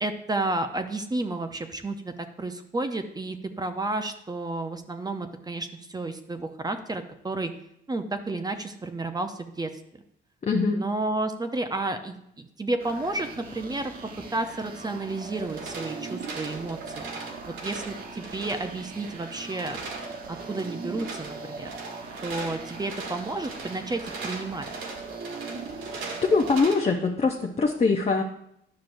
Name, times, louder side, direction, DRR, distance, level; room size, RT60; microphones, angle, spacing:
voice 1, 0.0-7.5 7.9-9.7 10.7-13.9 14.3-17.1 17.6-19.8 20.3-21.7 22.2-24.7, right 2 dB, 20° right, 7 dB, 0.7 m, -31 dB
voice 2, 10.4-10.8 25.9-28.2, left 4 dB, 30° left, 2 dB, 0.7 m, -23 dB
sound 1, 12.8-26.6, right 4 dB, 50° right, 1.3 m, -40 dB
sound 2, 15.3-26.9, right 3 dB, 90° right, 1.5 m, -40 dB
10.5 x 6.1 x 2.6 m, 0.76 s
cardioid pair, 90°, 20 cm